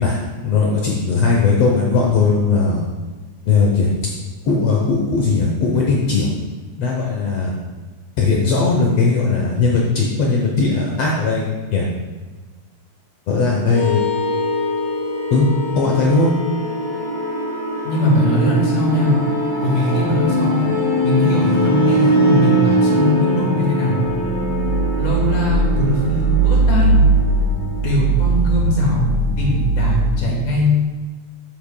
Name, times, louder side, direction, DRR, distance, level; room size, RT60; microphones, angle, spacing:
voice 1, 0.0-2.9 3.5-4.1 4.4-6.3 6.8-7.5 8.2-11.9 13.3-14.1 15.3-15.5 15.7-16.3, left 4 dB, 65° left, -1 dB, 1.6 m, -18 dB
sound 1, 13.6-30.2, right 1 dB, 30° left, 2.9 m, -19 dB
voice 2, 17.8-19.1 19.6-20.7 21.0-24.0 25.0-27.0 27.8-29.1 29.4-30.8, left 1 dB, 85° left, -2 dB, 3.4 m, -20 dB
10.5 x 8.6 x 2.2 m, 1.3 s
omnidirectional pair, 3.6 m